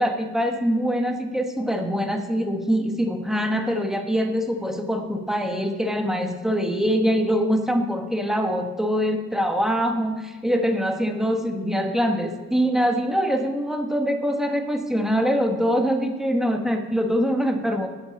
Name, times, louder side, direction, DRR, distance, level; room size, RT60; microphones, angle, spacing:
voice 1, 0.0-17.9, equal, ahead, 4 dB, 1.2 m, -24 dB
10.0 x 6.8 x 7.8 m, 1.2 s
wide cardioid pair, 110°, 29 cm